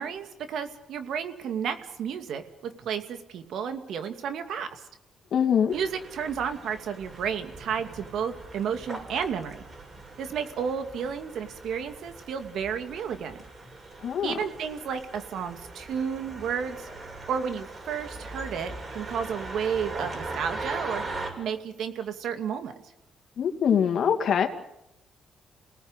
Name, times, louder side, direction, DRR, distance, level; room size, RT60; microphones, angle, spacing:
voice 1, 0.0-4.8 5.7-9.6 10.2-13.4 14.2-16.9 17.3-21.0 21.4-22.7, right 7 dB, 75° right, 7 dB, 2.5 m, -32 dB
voice 2, 5.3-5.7 14.0-14.3 23.4-24.5, left 8 dB, 60° left, 6 dB, 2.6 m, -23 dB
sound 1, 5.7-21.3, right 2 dB, 35° right, 7.7 m, -40 dB
29.0 x 19.0 x 8.2 m, 0.90 s
cardioid pair, 90°, 0 cm